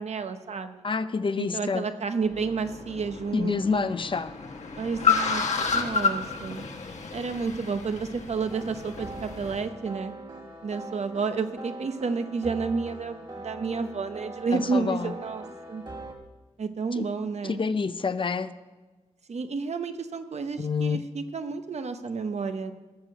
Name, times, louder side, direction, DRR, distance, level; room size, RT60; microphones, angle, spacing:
voice 1, 0.0-0.9 1.4-3.9 4.8-5.4 5.7-6.6 7.1-10.1 10.6-15.8 16.6-17.6 19.3-22.7, right 4 dB, 65° right, 8 dB, 0.9 m, -31 dB
voice 2, 0.8-1.9 3.3-4.3 14.5-15.1 16.9-17.1 17.4-18.5 20.6-21.0, left 5 dB, 45° left, 12 dB, 0.6 m, -27 dB
Car, 2.2-9.6, left 5 dB, 70° left, 1.5 m, -30 dB
sound 1, 8.5-16.1, right 2 dB, 40° right, 1.7 m, -42 dB
16.0 x 6.6 x 7.7 m, 1.2 s
wide cardioid pair, 105°, 12 cm